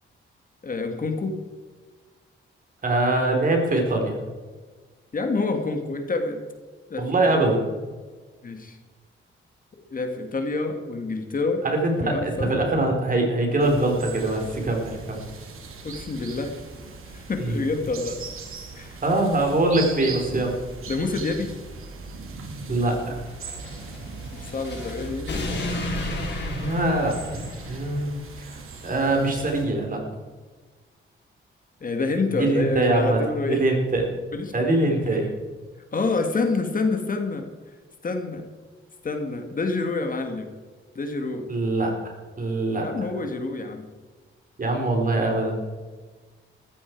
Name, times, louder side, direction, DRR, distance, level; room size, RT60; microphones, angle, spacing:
voice 1, 0.6-1.4 5.1-6.4 6.9-7.5 8.4-8.8 9.9-11.6 12.0-12.5 15.8-16.5 17.1-18.2 18.7-19.0 20.9-21.5 24.3-25.4 31.8-33.6 34.3-35.3 35.9-37.5 38.0-38.4 39.0-40.5 41.0-41.5 42.8-43.9, left 3 dB, 40° left, 5 dB, 1.8 m, -27 dB
voice 2, 2.8-4.2 7.0-7.6 11.6-15.2 17.4-17.6 19.0-20.6 22.7-23.2 26.5-28.1 28.4-28.5 28.8-30.0 32.4-33.2 33.5-34.1 34.5-35.3 41.5-42.1 42.4-42.8 44.6-45.6, right 2 dB, 40° right, 2 dB, 3.9 m, -23 dB
sound 1, 13.6-29.6, right 4 dB, 80° right, 2.7 m, -39 dB
sound 2, 23.3-28.1, left 1 dB, 55° left, 3.9 m, -33 dB
14.5 x 14.0 x 4.6 m, 1.4 s
cardioid pair, 110°, 21 cm